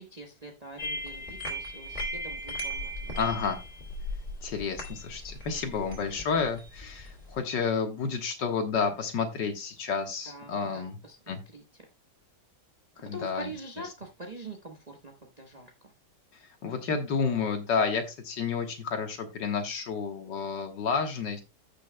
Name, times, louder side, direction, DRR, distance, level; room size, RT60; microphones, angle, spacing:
voice 1, 0.0-3.3 10.3-11.6 13.0-15.9, right 1 dB, 25° right, 1 dB, 1.1 m, -44 dB
sound 1, 0.8-7.4, equal, 25° left, 2.5 m, -37 dB
voice 2, 3.2-3.6 4.4-11.0 11.3-11.4 13.0-13.5 16.4-21.4, left 5 dB, 80° left, 5 dB, 2.0 m, -30 dB
15.5 x 6.3 x 2.2 m, 0.25 s
omnidirectional pair, 1.9 m